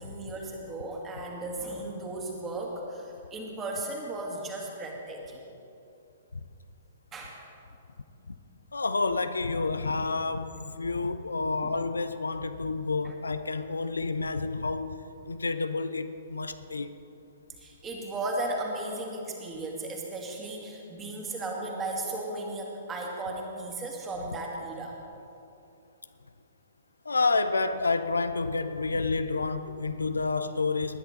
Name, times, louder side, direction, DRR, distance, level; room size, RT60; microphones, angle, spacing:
voice 1, 0.0-5.4 7.1-7.4 11.4-11.7 13.0-13.1 17.6-25.0, right 2 dB, 20° right, 2.2 m, -36 dB
voice 2, 8.7-15.0 15.3-16.9 27.0-31.0, left 3 dB, 75° left, 0.5 m, -29 dB
19.0 x 10.0 x 4.1 m
figure-of-eight pair, 115°, 0 cm